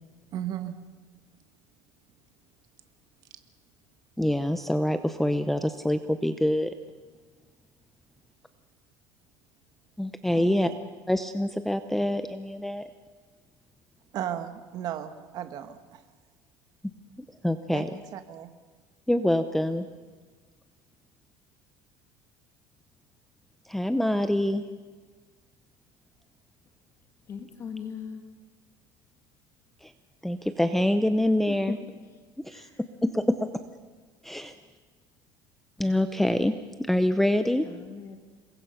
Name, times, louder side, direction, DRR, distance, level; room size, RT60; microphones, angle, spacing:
voice 1, 0.3-0.7 10.3-10.7 14.1-16.0 17.7-18.5, right 10 dB, 45° right, 8 dB, 1.8 m, -35 dB
voice 2, 4.2-6.8 10.0-10.7 11.1-12.8 17.4-17.9 19.1-19.9 23.6-24.6 29.8-29.9 30.2-31.8 32.4-32.7 33.0-33.6 34.2-34.5 35.8-36.5 36.9-37.7, left 1 dB, 5° left, 10 dB, 0.7 m, -25 dB
voice 3, 27.3-28.3 31.4-31.8 32.1-32.2 32.5-32.8 37.6-38.2, left 6 dB, 30° left, 6 dB, 1.6 m, -39 dB
27.5 x 22.0 x 5.8 m, 1.5 s
cardioid pair, 155°, 9 cm